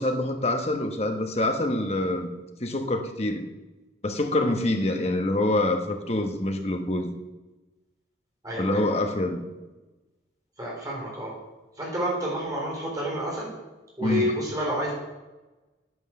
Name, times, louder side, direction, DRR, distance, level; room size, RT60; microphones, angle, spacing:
voice 1, 0.0-2.3 2.6-3.4 4.0-7.1 8.6-9.5 14.0-14.3, left 1 dB, 35° left, 5 dB, 1.1 m, -26 dB
voice 2, 8.4-8.8 10.6-11.3 11.8-13.5 14.0-14.9, equal, 20° right, -4 dB, 4.1 m, -29 dB
9.5 x 8.1 x 6.5 m, 1.1 s
head